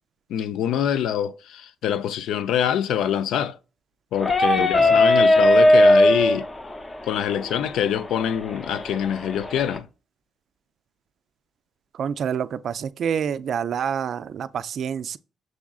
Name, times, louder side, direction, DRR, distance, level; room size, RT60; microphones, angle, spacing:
voice 1, 0.3-3.6 4.1-6.5 7.0-9.9, left 9 dB, 80° left, 0.4 m, -25 dB
sound 1, 4.1-9.8, left 1 dB, 25° left, 0.7 m, -19 dB
voice 2, 4.6-5.0 12.0-15.2, right 7 dB, 60° right, 0.3 m, -28 dB
6.3 x 3.6 x 2.3 m
cardioid pair, 90°, 0 cm